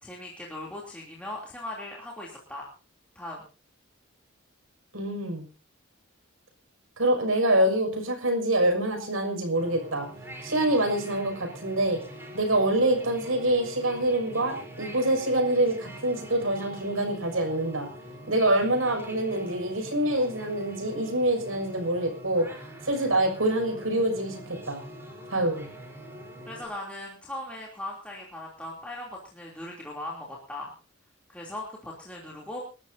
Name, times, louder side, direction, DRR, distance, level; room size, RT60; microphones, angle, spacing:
voice 1, 0.0-2.7 3.1-3.5 26.4-30.7 31.3-32.6, left 1 dB, 5° left, -3 dB, 3.2 m, -39 dB
voice 2, 4.9-5.4 7.0-10.1 10.4-12.0 12.3-17.9 18.3-22.5 22.8-24.4 24.7-24.8 25.3-25.7, right 1 dB, 70° right, 4 dB, 6.3 m, -25 dB
sound 1, 9.5-26.7, equal, 10° right, 4.0 m, -44 dB
28.0 x 13.0 x 2.8 m, 0.35 s
head